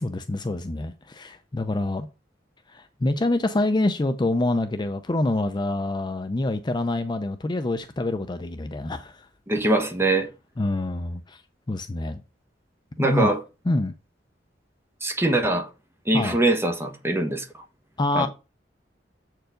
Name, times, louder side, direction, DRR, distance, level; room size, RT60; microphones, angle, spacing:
voice 1, 0.0-2.1 2.7-9.3 10.6-11.4 11.7-12.2 13.0-13.3 13.7-13.9 16.1-16.4 18.0-18.3, left 2 dB, 25° left, 0.5 m, -26 dB
voice 2, 9.5-10.3 13.0-13.4 15.0-15.7 16.1-17.5 18.1-18.3, right 2 dB, 15° right, 1.3 m, -22 dB
7.7 x 4.7 x 5.0 m
head